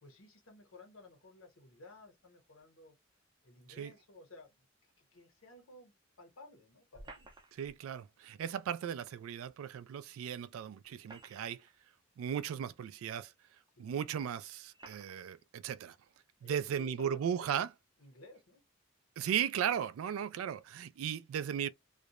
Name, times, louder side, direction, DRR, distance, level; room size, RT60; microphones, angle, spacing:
voice 1, 0.0-3.0 3.4-7.3 13.8-13.9 16.4-17.7 18.0-18.6, left 2 dB, 75° left, 1.0 m, -56 dB
sound 1, 6.9-7.8 9.5-9.6 10.8-11.7 12.6-12.7 13.7-13.8 14.7-15.2, right 2 dB, 20° right, 0.4 m, -54 dB
voice 2, 7.6-11.6 12.2-13.3 13.8-16.0 16.4-17.7 19.2-21.7, right 8 dB, 90° right, 0.3 m, -36 dB
2.3 x 2.0 x 2.8 m
head